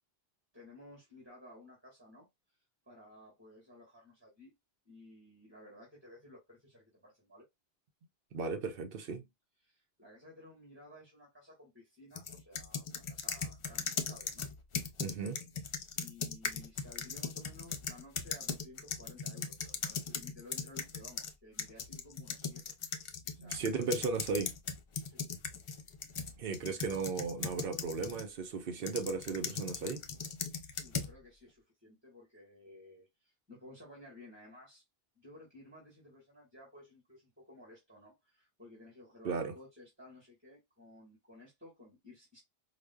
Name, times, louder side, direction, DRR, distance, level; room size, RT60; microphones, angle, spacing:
voice 1, 0.5-2.3 2.9-4.5 4.9-7.5 9.6-14.5 16.0-22.7 23.3-24.2 25.0-25.3 30.7-34.8 35.2-42.4, left 1 dB, 10° right, 1.8 m, -56 dB
voice 2, 8.3-9.3 15.0-15.4 23.3-24.5 26.4-30.0 39.2-39.5, right 4 dB, 65° right, 0.8 m, -36 dB
sound 1, 12.2-21.3 21.6-28.3 28.9-31.1, left 5 dB, 50° left, 0.3 m, -39 dB
4.9 x 2.1 x 2.3 m
omnidirectional pair, 1.0 m